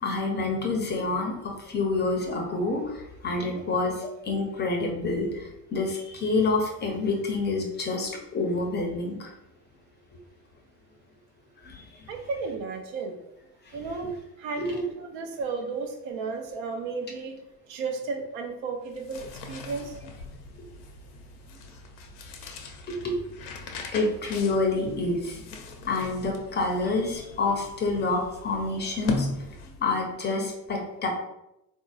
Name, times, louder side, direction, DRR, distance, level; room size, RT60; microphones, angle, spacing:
voice 1, 0.0-9.3 11.6-11.8 13.7-13.8 14.6-14.8 22.9-23.2 23.9-25.4 25.8-29.3 29.8-31.1, left 3 dB, 20° left, 1 dB, 0.6 m, -28 dB
voice 2, 12.1-13.2 13.7-17.4 17.7-19.9, right 4 dB, 55° right, 4 dB, 0.8 m, -34 dB
sound 1, 18.8-30.0, left 3 dB, 65° left, 0.7 m, -39 dB
3.8 x 2.7 x 2.4 m, 0.87 s
hypercardioid pair, 80°, 49 cm